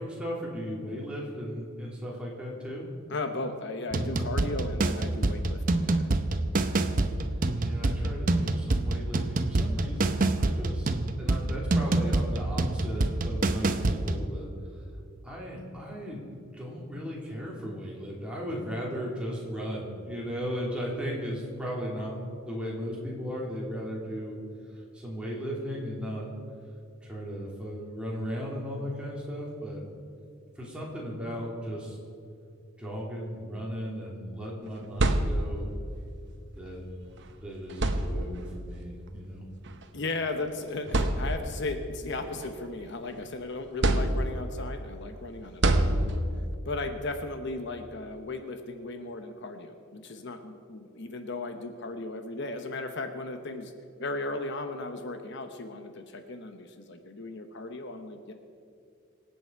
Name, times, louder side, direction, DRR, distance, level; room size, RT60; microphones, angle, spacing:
voice 1, 0.0-2.9 7.2-7.3 7.6-10.9 11.2-14.8 15.2-24.4 24.7-26.3 27.0-29.8 30.5-32.0 32.8-35.7 36.5-36.9 37.4-39.4, equal, 5° right, -5 dB, 3.0 m, -36 dB
voice 2, 3.1-6.1 39.9-46.1 46.7-53.7 54.0-58.3, left 2 dB, 60° left, 7 dB, 0.9 m, -36 dB
sound 1, 3.9-14.3, right 2 dB, 40° right, 0.7 m, -27 dB
sound 2, 34.7-35.8 37.1-37.2 37.7-38.6 39.7-39.8 40.4-40.5 40.9-41.7 42.2-43.2 43.8-44.6 45.6-46.5, right 1 dB, 60° right, 0.9 m, -26 dB
25.0 x 8.4 x 4.6 m, 2.5 s
head